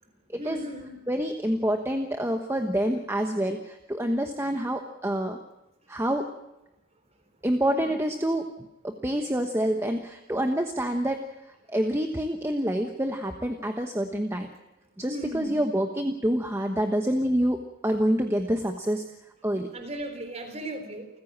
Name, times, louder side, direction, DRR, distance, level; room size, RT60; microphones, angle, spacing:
voice 1, 0.4-1.0 7.7-7.9 15.0-15.6 19.7-21.1, right 1 dB, 30° right, 6 dB, 3.7 m, -36 dB
voice 2, 1.1-5.4 5.9-6.3 7.4-8.5 8.8-11.2 11.7-14.5 15.0-17.6 17.8-19.0 19.4-19.7, equal, 10° right, 5 dB, 1.2 m, -27 dB
29.0 x 15.5 x 7.4 m, 0.94 s
head